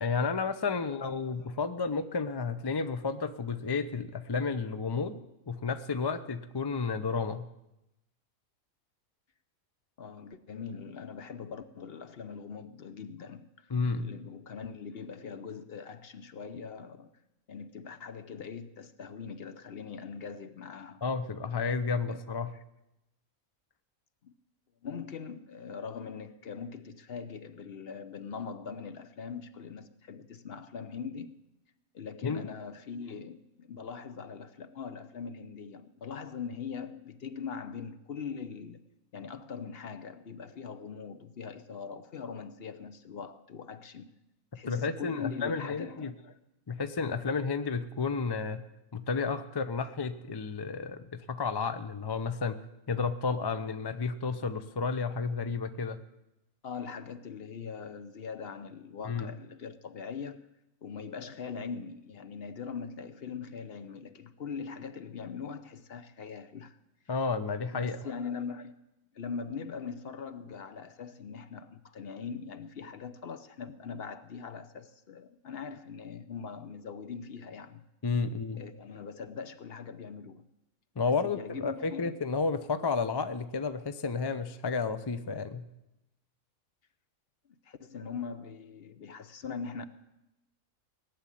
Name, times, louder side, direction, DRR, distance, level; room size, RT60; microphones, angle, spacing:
voice 1, 0.0-5.2 5.5-7.5 13.7-14.1 21.0-22.5 32.2-32.4 44.7-46.1 46.7-48.6 48.9-52.6 52.9-56.0 59.1-59.3 67.1-68.0 78.0-78.6 81.0-85.6, left 4 dB, 35° left, 0.4 m, -31 dB
voice 2, 0.7-1.6 10.0-17.1 17.5-21.0 22.1-22.6 24.2-24.3 24.8-31.4 31.9-38.8 39.1-44.1 44.5-46.4 56.6-60.5 60.8-66.8 67.7-68.7 69.1-77.8 78.6-80.4 81.1-82.2 87.7-89.9, left 6 dB, 50° left, 0.9 m, -41 dB
18.0 x 7.3 x 10.0 m
omnidirectional pair, 1.4 m